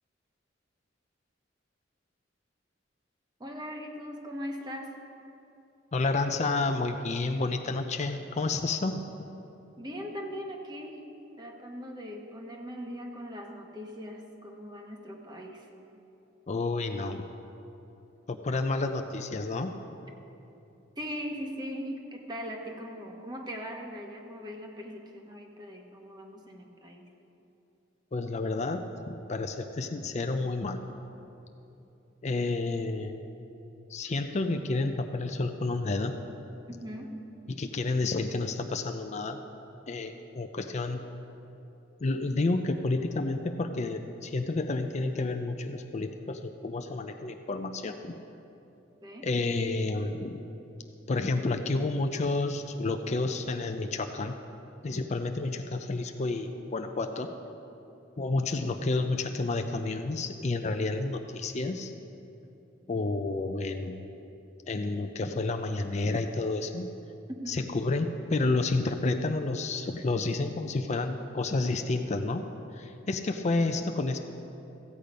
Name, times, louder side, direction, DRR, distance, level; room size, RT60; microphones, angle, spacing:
voice 1, 3.4-5.0 9.8-11.1 11.4-15.7 21.0-27.1 36.7-37.2 49.0-49.3 67.4-67.5, equal, 20° right, 1 dB, 1.2 m, -40 dB
voice 2, 5.9-9.0 16.5-17.2 18.3-19.7 28.1-30.8 32.2-33.2 33.9-36.2 37.5-39.4 39.9-41.0 42.0-48.2 49.2-50.5 51.1-54.4 54.8-57.3 58.2-61.9 62.9-64.0 64.7-66.9 67.5-72.4 72.7-74.2, left 3 dB, 35° left, 6 dB, 0.5 m, -30 dB
15.0 x 8.5 x 5.1 m, 2.9 s
head